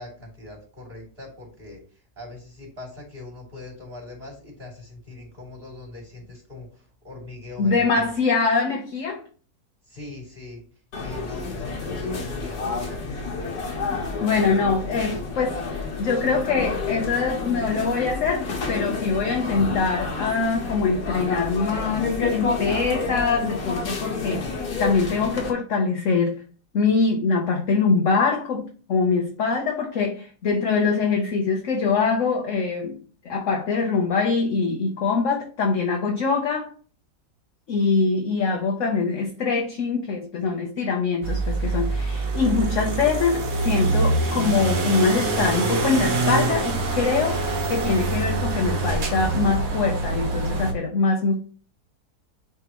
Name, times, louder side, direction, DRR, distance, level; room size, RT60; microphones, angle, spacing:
voice 1, 0.0-8.1 9.9-10.6 10.9-13.2, left 2 dB, 25° right, -3 dB, 3.3 m, -41 dB
voice 2, 7.6-9.2 14.2-26.4 26.7-33.0 33.2-36.7 37.7-51.3, left 4 dB, 55° left, 1 dB, 1.1 m, -23 dB
sound 1, 10.9-25.5, left 4 dB, 75° left, 1.9 m, -29 dB
sound 2, 41.2-50.7, right 3 dB, 60° right, 1.4 m, -25 dB
9.3 x 3.5 x 3.1 m, 0.41 s
omnidirectional pair, 1.7 m